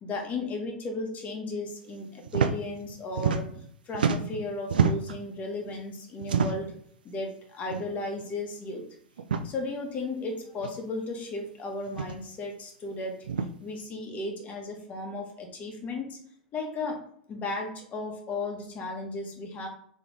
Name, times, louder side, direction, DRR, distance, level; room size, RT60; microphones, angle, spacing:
voice 1, 0.0-3.5 3.9-6.7 7.0-8.8 9.4-13.3 13.6-16.2 16.5-17.0 17.3-19.7, left 2 dB, 30° left, 2 dB, 1.4 m, -35 dB
sound 1, 2.3-2.5 2.8-3.7 3.9-5.2 6.2-6.8 7.7-7.9 8.2-8.3 9.2-9.5 10.6-10.7 11.9-12.2 13.2-13.5, right 6 dB, 80° right, 0.4 m, -27 dB
3.7 x 3.2 x 3.7 m, 0.63 s
hypercardioid pair, 95°, 5 cm